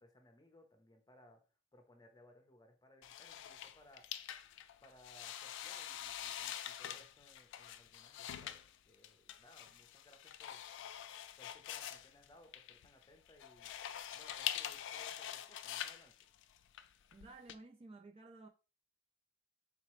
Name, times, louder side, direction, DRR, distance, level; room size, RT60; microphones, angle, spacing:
voice 1, 0.0-1.4 1.7-4.1 4.8-10.6 11.4-13.7 14.1-16.1, left 1 dB, 20° left, 0.7 m, -63 dB
sound 1, 3.0-17.5, left 11 dB, 60° left, 0.3 m, -45 dB
voice 2, 17.1-18.5, right 3 dB, 30° right, 0.3 m, -54 dB
4.0 x 2.9 x 3.0 m
head